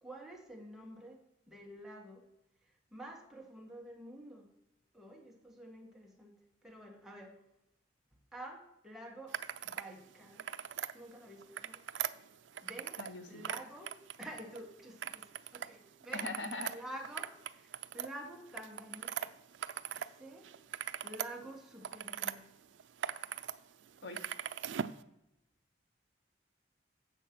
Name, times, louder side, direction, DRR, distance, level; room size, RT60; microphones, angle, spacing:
voice 1, 0.0-1.2 1.5-2.3 2.9-4.5 4.9-6.3 6.6-7.4 8.3-9.4 9.6-10.5 10.9-11.8 12.6-13.0 13.3-16.3 16.7-19.4 20.1-20.5 21.0-22.5, right 1 dB, ahead, -1 dB, 1.4 m, -49 dB
sound 1, 9.3-9.9 10.2-10.9 11.4-13.1 13.4-14.6 15.0-15.7 16.0-20.1 20.4-22.3 22.8-23.5 23.8-25.0, right 9 dB, 85° right, 0.4 m, -40 dB
voice 2, 13.0-13.4 16.1-16.7 24.0-24.2, left 2 dB, 85° left, 7 dB, 1.0 m, -41 dB
8.1 x 6.3 x 5.9 m, 0.83 s
head